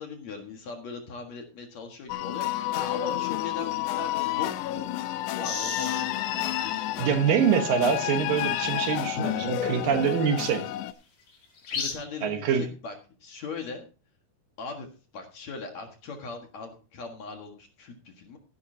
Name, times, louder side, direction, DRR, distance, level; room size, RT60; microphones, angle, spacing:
voice 1, 0.0-4.9 5.4-7.1 9.2-9.5 11.7-13.0 13.2-13.9 14.6-14.9 15.1-18.4, left 4 dB, 55° left, 2.5 m, -39 dB
sound 1, 2.1-10.9, left 14 dB, 90° left, 1.7 m, -30 dB
sound 2, 5.4-6.0 7.0-7.1 7.3-8.2 9.5-9.6 11.4-11.9, left 5 dB, 70° left, 5.2 m, -33 dB
voice 2, 7.0-10.7 12.2-12.7, right 7 dB, 70° right, 2.8 m, -25 dB
15.0 x 11.0 x 2.8 m
omnidirectional pair, 4.4 m